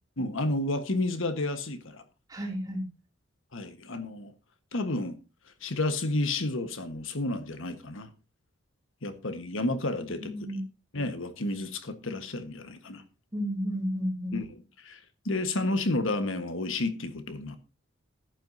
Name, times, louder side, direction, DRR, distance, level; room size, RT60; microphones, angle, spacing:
voice 1, 0.2-2.0 3.5-4.3 4.7-5.2 5.6-8.1 9.0-10.3 10.9-13.0 14.3-14.5 14.8-15.0 15.2-17.6, left 2 dB, 70° left, 1.4 m, -31 dB
voice 2, 2.3-2.8 10.1-10.6 13.3-14.4, equal, 20° right, 2.7 m, -32 dB
14.0 x 11.5 x 2.8 m
head